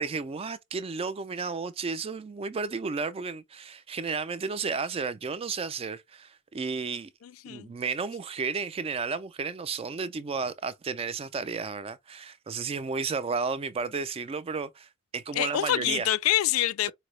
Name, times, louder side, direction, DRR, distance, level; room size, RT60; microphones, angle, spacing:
voice 1, 0.0-7.1 7.5-16.1, right 5 dB, 25° right, 0.3 m, -33 dB
voice 2, 7.2-7.7 15.3-16.9, left 12 dB, 75° left, 0.4 m, -26 dB
4.7 x 2.0 x 3.1 m
head